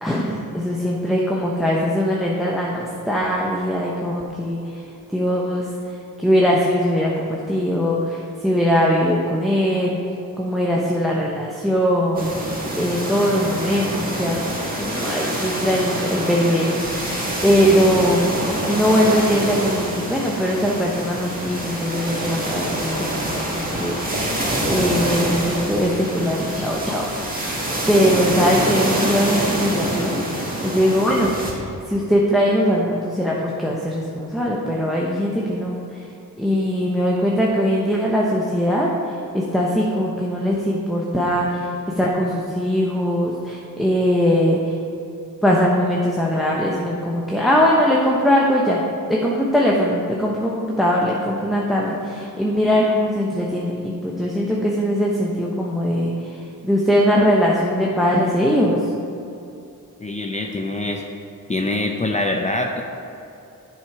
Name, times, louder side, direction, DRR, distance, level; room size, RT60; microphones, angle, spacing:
voice 1, 0.0-4.8 5.1-10.0 10.4-14.4 14.8-18.3 18.6-24.3 24.7-27.5 27.9-30.2 30.6-36.0 36.4-41.7 42.0-44.7 45.4-48.8 49.1-58.9, equal, ahead, -3 dB, 0.9 m, -21 dB
sound 1, 12.1-31.5, right 1 dB, 25° right, 1.8 m, -26 dB
voice 2, 60.0-61.0 61.5-62.8, left 2 dB, 20° left, 2 dB, 0.6 m, -24 dB
7.3 x 6.3 x 4.8 m, 2.7 s
cardioid pair, 80°, 36 cm